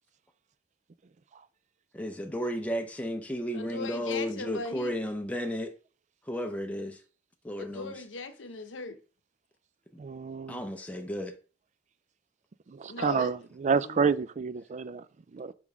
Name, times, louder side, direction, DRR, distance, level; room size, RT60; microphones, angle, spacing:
voice 1, 1.9-5.7 6.3-7.0 7.4-7.9 9.9-10.0 10.5-11.3, equal, 10° left, 0.6 m, -33 dB
voice 2, 3.5-5.0 7.6-9.0 12.9-13.4 13.7-14.1, left 3 dB, 75° left, 0.8 m, -39 dB
voice 3, 10.0-10.6 13.0-13.4 13.6-15.0 15.3-15.5, right 5 dB, 40° right, 0.4 m, -28 dB
5.2 x 5.2 x 4.8 m
head